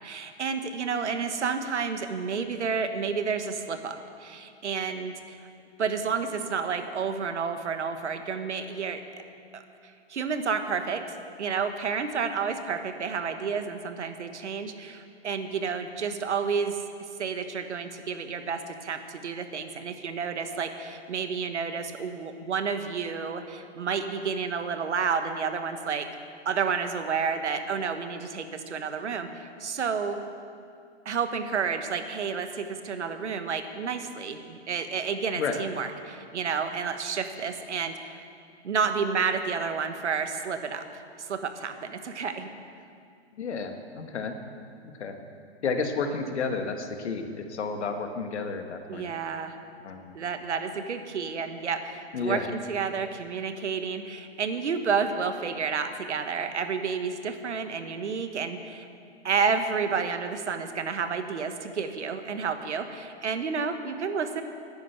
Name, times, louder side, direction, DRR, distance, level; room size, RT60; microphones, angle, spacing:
voice 1, 0.0-5.5 5.8-9.0 9.5-9.6 10.1-16.8 17.2-26.1 26.4-30.2 31.0-38.2 38.6-40.8 41.2-42.5 48.9-49.5 50.1-58.9 59.2-64.4, right 5 dB, 90° right, 8 dB, 1.4 m, -30 dB
voice 2, 43.3-44.4 44.8-45.2 45.6-49.0 49.8-50.1 52.1-52.5, left 4 dB, 80° left, 5 dB, 1.7 m, -31 dB
11.0 x 10.5 x 8.0 m, 2.4 s
hypercardioid pair, 140°, 34 cm